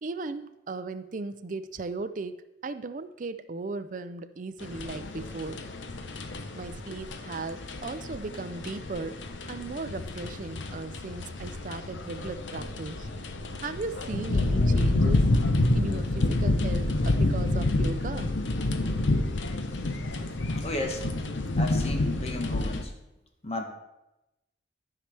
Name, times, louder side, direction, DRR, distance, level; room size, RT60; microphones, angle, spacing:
voice 1, 0.0-5.6 6.6-9.2 9.5-13.1 13.6-15.3 15.7-18.3, right 3 dB, 45° right, 11 dB, 0.4 m, -37 dB
sound 1, 4.6-22.8, left 2 dB, 90° left, 0.8 m, -28 dB
voice 2, 20.6-21.0 21.6-22.9 23.4-23.7, left 1 dB, 35° left, 3 dB, 1.1 m, -33 dB
13.0 x 5.7 x 3.4 m, 0.95 s
head